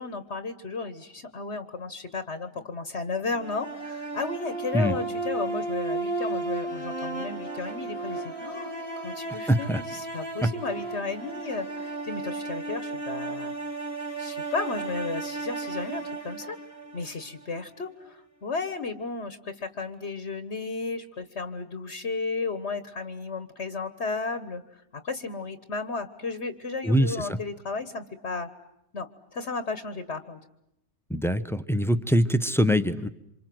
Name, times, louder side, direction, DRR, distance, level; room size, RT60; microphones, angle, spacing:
voice 1, 0.0-13.6 14.2-16.6 16.9-28.5 28.9-30.4, left 4 dB, 55° left, 10 dB, 1.6 m, -34 dB
sound 1, 3.3-17.4, right 2 dB, 25° right, 2.4 m, -34 dB
voice 2, 9.3-9.8 26.8-27.4 31.1-33.1, equal, ahead, 12 dB, 0.8 m, -24 dB
28.0 x 26.5 x 7.8 m, 0.82 s
omnidirectional pair, 1.5 m